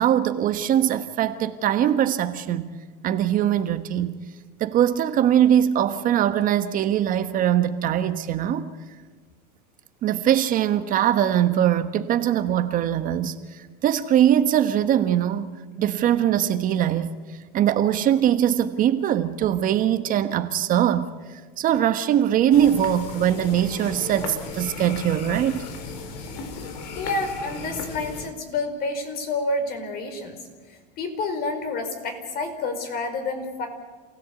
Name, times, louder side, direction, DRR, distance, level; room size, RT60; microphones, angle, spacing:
voice 1, 0.0-2.7 3.0-4.2 4.6-8.7 10.0-15.5 15.8-17.2 17.5-21.1 21.6-25.7, right 10 dB, 40° right, 10 dB, 1.3 m, -21 dB
sound 1, 22.5-28.3, left 4 dB, 75° left, 3.5 m, -36 dB
voice 2, 26.9-30.4 31.0-33.7, left 3 dB, 45° left, 6 dB, 5.0 m, -29 dB
27.5 x 17.0 x 8.5 m, 1.4 s
supercardioid pair, 120°, 21 cm